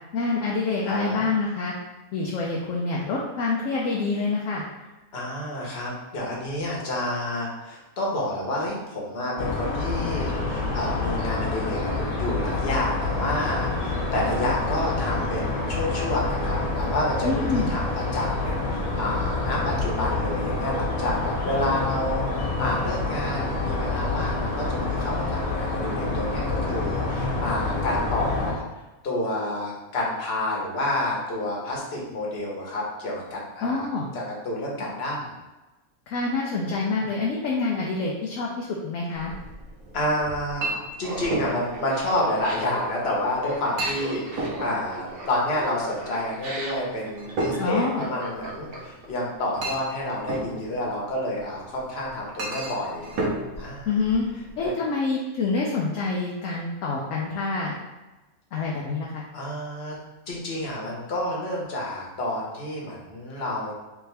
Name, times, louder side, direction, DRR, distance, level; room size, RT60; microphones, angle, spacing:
voice 1, 0.1-1.7 2.1-4.7 17.2-17.7 33.6-34.1 36.1-39.3 47.6-48.0 53.9-54.3 54.6-57.8 58.5-59.2, left 3 dB, 70° left, -2 dB, 0.9 m, -26 dB
voice 2, 0.8-1.3 5.1-28.6 29.0-33.9 34.1-35.3 36.6-37.1 39.9-40.7 41.0-53.1 53.6-54.0 54.6-54.7 59.3-60.0 60.3-63.7, left 1 dB, 50° left, -3 dB, 1.1 m, -29 dB
sound 1, 9.4-28.5, left 3 dB, 90° left, 1.6 m, -27 dB
Chink clink, 39.1-54.7, right 2 dB, 75° right, 1.2 m, -35 dB
Laughter, 41.0-49.1, right 1 dB, 50° right, 0.9 m, -37 dB
3.5 x 3.5 x 3.3 m, 1.1 s
omnidirectional pair, 1.5 m